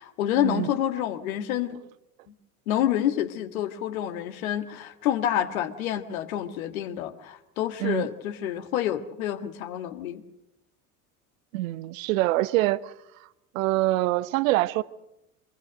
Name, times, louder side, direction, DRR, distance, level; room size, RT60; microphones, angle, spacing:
voice 1, 0.0-1.8 2.7-10.2, left 11 dB, 65° left, 1.9 m, -28 dB
voice 2, 11.5-12.9 13.5-14.8, right 18 dB, 60° right, 0.9 m, -25 dB
25.5 x 22.0 x 6.6 m
figure-of-eight pair, 70°, 45 cm